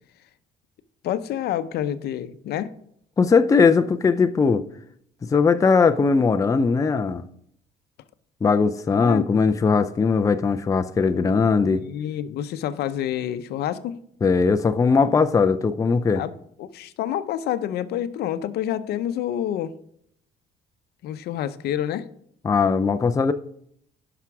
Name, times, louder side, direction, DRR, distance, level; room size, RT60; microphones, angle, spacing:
voice 1, 1.0-2.7 9.0-9.3 11.7-14.0 16.2-16.3 16.6-19.7 21.0-22.1, left 11 dB, 70° left, 0.7 m, -28 dB
voice 2, 3.2-4.7 5.3-7.2 8.4-11.8 14.2-16.2 22.4-23.3, left 5 dB, 20° left, 0.5 m, -19 dB
11.0 x 5.9 x 4.7 m
cardioid pair, 110°, 17 cm